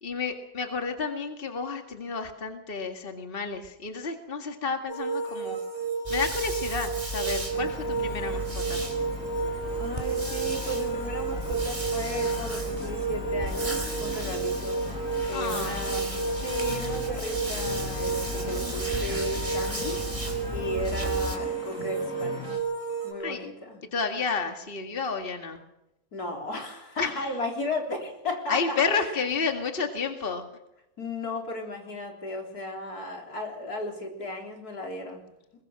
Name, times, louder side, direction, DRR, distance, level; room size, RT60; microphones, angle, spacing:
voice 1, 0.0-5.6 6.1-8.8 15.3-15.8 23.2-23.5 23.9-25.6 27.0-27.3 28.5-30.5, left 5 dB, 40° left, 5 dB, 2.2 m, -31 dB
sound 1, 4.9-23.1, right 4 dB, 50° right, 4.8 m, -32 dB
sound 2, 6.0-21.4, right 1 dB, 20° right, 3.1 m, -35 dB
sound 3, 7.5-22.6, left 4 dB, 60° left, 3.2 m, -41 dB
voice 2, 9.8-22.6 23.0-23.8 26.1-29.2 31.0-35.2, left 2 dB, 85° left, 2 dB, 4.2 m, -35 dB
21.5 x 21.5 x 6.4 m, 0.87 s
omnidirectional pair, 1.6 m